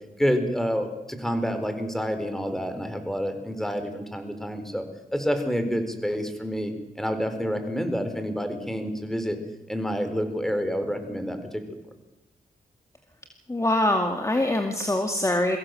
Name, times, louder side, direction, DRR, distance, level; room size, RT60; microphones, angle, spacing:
voice 1, 0.2-4.8 5.1-9.4 9.7-11.6, equal, ahead, 7 dB, 4.4 m, -28 dB
voice 2, 13.5-15.6, left 1 dB, 20° left, 4 dB, 2.2 m, -24 dB
23.5 x 15.5 x 7.8 m, 1.0 s
cardioid pair, 65°, 16 cm